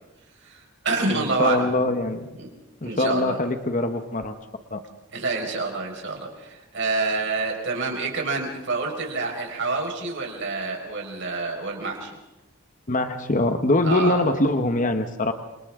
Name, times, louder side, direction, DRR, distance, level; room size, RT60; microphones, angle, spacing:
voice 1, 0.4-1.7 2.4-2.5 2.8-3.4 5.1-12.1 13.8-14.2, right 3 dB, 60° right, 1 dB, 5.1 m, -27 dB
voice 2, 1.1-2.3 2.8-4.4 4.7-4.8 12.9-15.3, left 2 dB, 40° left, 7 dB, 1.1 m, -23 dB
28.5 x 26.5 x 3.7 m, 1.0 s
head